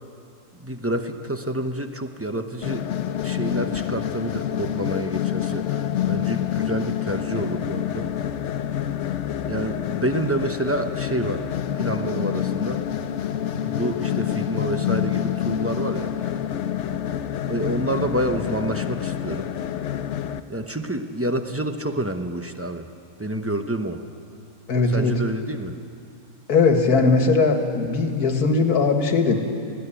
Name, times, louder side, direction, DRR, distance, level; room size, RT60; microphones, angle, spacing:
voice 1, 0.5-2.9 3.2-8.1 9.5-11.5 11.8-12.8 13.6-16.4 17.5-19.5 20.5-22.9 23.2-24.0 24.9-25.8, right 1 dB, 15° right, 6 dB, 0.7 m, -28 dB
sound 1, 2.6-20.4, left 10 dB, 60° left, 0.9 m, -27 dB
voice 2, 24.7-25.2 26.5-29.3, left 4 dB, 85° left, 5 dB, 2.1 m, -19 dB
20.5 x 15.0 x 10.0 m, 2.6 s
omnidirectional pair, 1.6 m